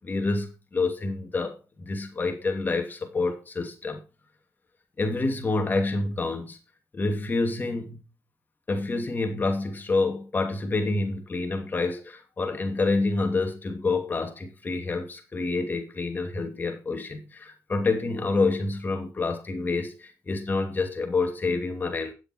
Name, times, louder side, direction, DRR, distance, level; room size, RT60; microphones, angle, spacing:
voice 1, 0.0-4.0 5.0-6.6 6.9-8.0 8.7-22.1, left 3 dB, 30° left, 2.7 m, -28 dB
9.8 x 7.7 x 4.7 m
cardioid pair, 85°, 6 cm